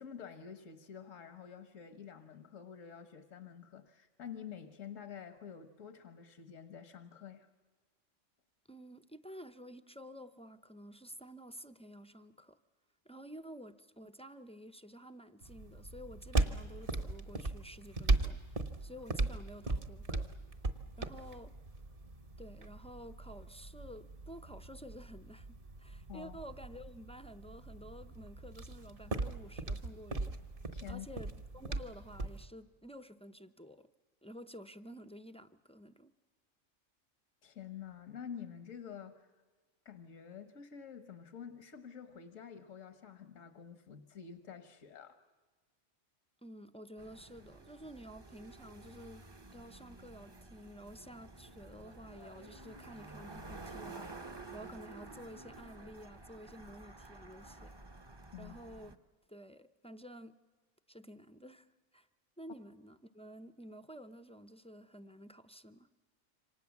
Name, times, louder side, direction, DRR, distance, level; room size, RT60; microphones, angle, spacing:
voice 1, 0.0-7.5 26.1-26.4 30.7-31.1 37.4-39.3 39.8-45.2 58.3-58.5, left 8 dB, 80° left, 1.6 m, -48 dB
voice 2, 8.7-12.6 13.0-18.4 18.8-20.3 21.0-21.5 22.4-30.4 30.9-33.9 34.2-36.1 46.4-49.3 49.5-57.7 58.4-58.9 59.3-60.4 60.9-61.7 61.9-62.1 62.4-65.9, equal, 5° left, 0.5 m, -51 dB
sound 1, 15.4-32.5, right 2 dB, 45° right, 1.5 m, -38 dB
sound 2, 47.0-59.0, right 3 dB, 25° right, 0.8 m, -51 dB
28.0 x 25.5 x 7.2 m
omnidirectional pair, 1.3 m